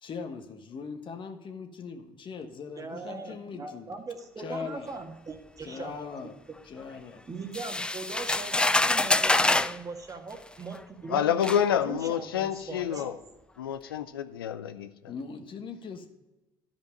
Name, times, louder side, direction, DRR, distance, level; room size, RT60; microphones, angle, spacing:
voice 1, 0.0-3.9 4.4-4.9 5.6-6.3 6.6-7.2 15.1-16.1, left 5 dB, 45° left, 6 dB, 1.3 m, -40 dB
voice 2, 2.7-6.3 7.3-11.5 11.8-13.2, right 4 dB, 30° right, 5 dB, 1.5 m, -40 dB
sound 1, 7.5-9.8 10.7-10.8 11.4-11.6, left 2 dB, 10° left, 0.3 m, -25 dB
voice 3, 11.1-13.2 13.6-14.9, left 9 dB, 90° left, 11 dB, 0.4 m, -28 dB
11.5 x 5.2 x 5.1 m, 1.1 s
hypercardioid pair, 65°, 12 cm